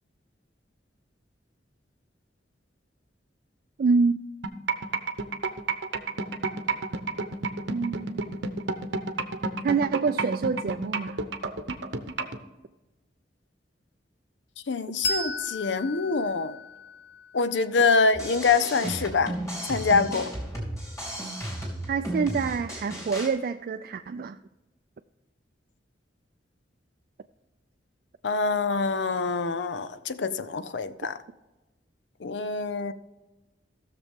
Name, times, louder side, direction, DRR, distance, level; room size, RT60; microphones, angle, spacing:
voice 1, 3.8-4.3 7.7-8.4 9.6-11.2 21.9-24.4, right 5 dB, 55° right, 0.3 m, -26 dB
sound 1, 4.4-12.4, right 4 dB, 80° right, 0.9 m, -29 dB
voice 2, 14.7-16.6 17.3-19.3 19.7-20.3 28.2-31.2 32.2-32.9, left 4 dB, 80° left, 0.6 m, -25 dB
Bell, 15.0-18.1, left 2 dB, 65° left, 1.2 m, -35 dB
sound 2, 18.1-23.3, right 1 dB, 20° left, 2.9 m, -34 dB
16.0 x 6.8 x 3.6 m
head